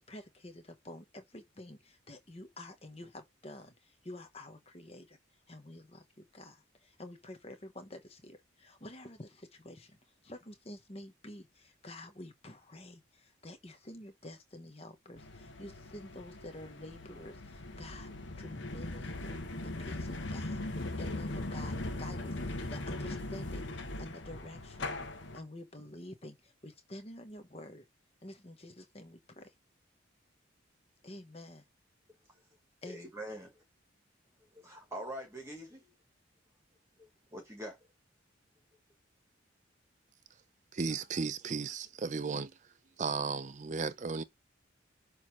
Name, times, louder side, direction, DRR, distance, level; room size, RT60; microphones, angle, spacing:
voice 1, 0.0-5.2 5.5-10.0 10.2-24.9 25.3-27.8 28.2-29.5 31.0-31.6 32.8-33.1, left 1 dB, 30° left, 1.0 m, -49 dB
sound 1, 15.2-25.4, left 2 dB, 65° left, 1.0 m, -40 dB
voice 2, 32.8-33.6 34.5-35.9 37.3-37.8, right 1 dB, 15° right, 1.4 m, -43 dB
voice 3, 40.7-42.5 43.0-44.2, right 4 dB, 35° right, 0.5 m, -35 dB
6.5 x 3.2 x 5.9 m
head